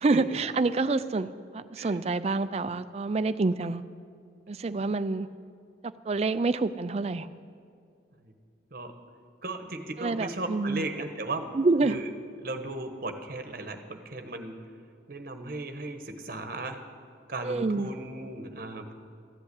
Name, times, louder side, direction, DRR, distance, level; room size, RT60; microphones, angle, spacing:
voice 1, 0.0-3.8 4.5-5.3 6.1-7.3 10.0-10.9 11.5-12.0 17.4-17.9, right 3 dB, 35° right, 13 dB, 0.4 m, -27 dB
voice 2, 9.4-11.6 11.8-12.1 12.4-14.5 15.1-16.8 17.3-18.9, right 2 dB, 50° right, 6 dB, 1.1 m, -36 dB
14.0 x 8.0 x 8.4 m, 2.4 s
head